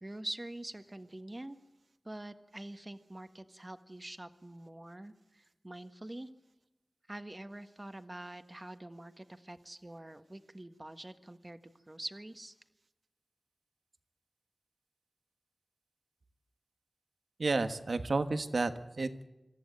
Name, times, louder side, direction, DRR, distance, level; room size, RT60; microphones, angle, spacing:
voice 1, 0.0-1.6 2.0-6.3 7.1-12.5, right 1 dB, 30° right, 8 dB, 1.5 m, -45 dB
voice 2, 17.4-19.2, right 3 dB, 80° right, 8 dB, 1.3 m, -31 dB
26.5 x 14.0 x 9.0 m, 1.0 s
wide cardioid pair, 50°, 0 cm